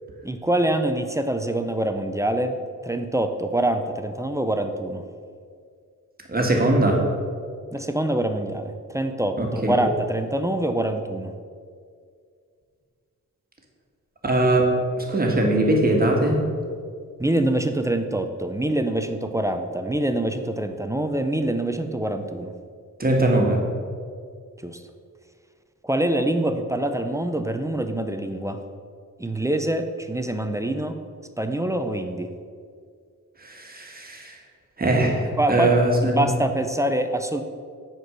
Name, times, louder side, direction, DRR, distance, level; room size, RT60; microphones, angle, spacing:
voice 1, 0.2-2.6 2.8-5.0 7.7-11.3 17.2-22.5 24.6-24.8 25.8-28.6 29.2-31.0 31.4-32.3 35.4-37.4, right 1 dB, 10° right, 6 dB, 0.5 m, -25 dB
voice 2, 6.3-7.0 9.4-9.7 14.2-16.5 23.0-23.6 33.4-34.3 34.8-36.3, right 1 dB, 30° right, 0 dB, 1.5 m, -21 dB
9.6 x 4.5 x 6.1 m, 2.1 s
wide cardioid pair, 105°, 32 cm